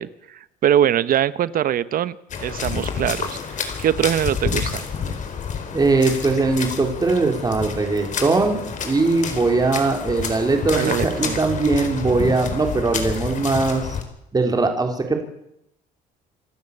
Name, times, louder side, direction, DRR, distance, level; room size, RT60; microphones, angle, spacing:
voice 1, 0.0-3.4 3.8-4.9 10.7-11.4, right 10 dB, 55° right, 16 dB, 1.1 m, -22 dB
sound 1, 2.3-14.0, left 6 dB, 45° left, 4.2 m, -29 dB
voice 2, 5.7-14.0 14.3-15.2, right 3 dB, 25° right, 4 dB, 3.8 m, -20 dB
27.0 x 12.5 x 8.6 m, 0.80 s
cardioid pair, 110°, 17 cm